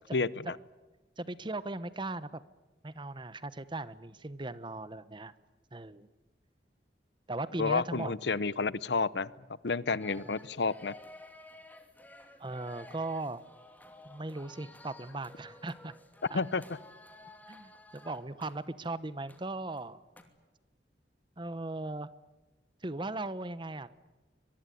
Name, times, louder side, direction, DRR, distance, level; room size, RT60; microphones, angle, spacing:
voice 1, 0.1-0.6 7.6-9.3 9.6-10.9 16.3-16.6, left 4 dB, 75° left, 19 dB, 0.8 m, -30 dB
voice 2, 1.2-2.3 2.8-5.3 5.7-6.1 7.3-8.1 10.2-10.4 12.4-13.4 14.0-15.9 16.3-16.4 17.5-20.0 21.4-22.1 22.8-23.9, right 2 dB, 25° right, 15 dB, 1.0 m, -38 dB
sound 1, 10.0-19.4 19.7-19.8 20.2-20.3, left 2 dB, 10° left, 2.7 m, -53 dB
25.0 x 22.5 x 9.3 m, 1.2 s
head